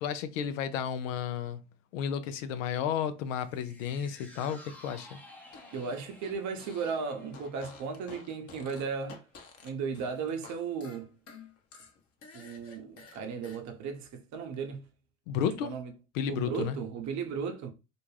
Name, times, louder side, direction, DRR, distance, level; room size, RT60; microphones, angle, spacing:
voice 1, 0.0-1.6 1.9-5.2 15.3-15.7 16.1-16.8, left 8 dB, 80° left, 0.5 m, -32 dB
sound 1, 3.3-9.7 10.1-10.2, left 1 dB, 5° left, 0.6 m, -55 dB
Fart, 5.5-7.0 7.3-10.5 10.8-13.6, left 4 dB, 40° left, 0.8 m, -51 dB
voice 2, 5.7-9.2 9.6-11.1 12.3-14.8 15.4-15.9 16.3-17.7, right 5 dB, 45° right, 0.8 m, -36 dB
2.5 x 2.2 x 3.1 m
hypercardioid pair, 75°, 38 cm